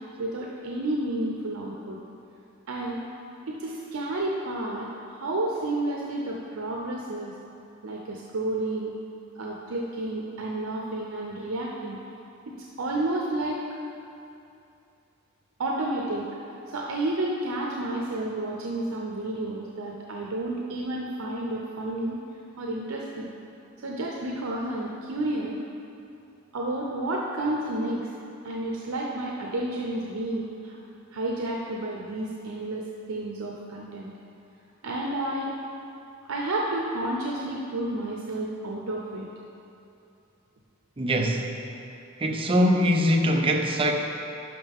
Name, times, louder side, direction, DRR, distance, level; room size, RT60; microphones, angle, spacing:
voice 1, 0.2-2.0 2.7-3.0 3.5-7.3 7.8-9.0 9.4-12.0 12.8-13.6 15.6-16.2 16.7-22.2 22.6-23.3 23.8-25.5 26.5-28.1 28.4-30.7 31.1-34.1 34.8-35.5 36.3-39.3, right 1 dB, 85° right, -2 dB, 0.7 m, -31 dB
voice 2, 41.0-41.5 42.2-43.9, equal, 25° right, 2 dB, 0.6 m, -22 dB
11.0 x 5.7 x 3.6 m, 2.7 s
head